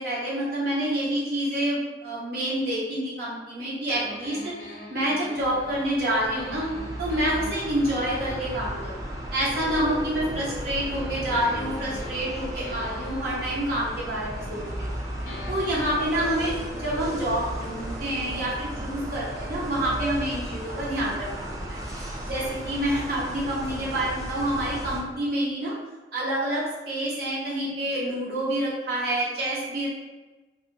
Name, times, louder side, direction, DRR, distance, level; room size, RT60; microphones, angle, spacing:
voice 1, 0.0-4.5 4.9-6.7 7.0-14.9 15.5-21.8 22.2-25.7 26.1-29.9, right 1 dB, 60° right, -7 dB, 0.7 m, -28 dB
sound 1, 3.9-10.4 10.9-14.9 15.3-21.0, left 2 dB, 45° left, 0.5 m, -44 dB
sound 2, 5.4-25.0, equal, 20° right, 0.4 m, -35 dB
2.9 x 2.4 x 2.5 m, 1.2 s
head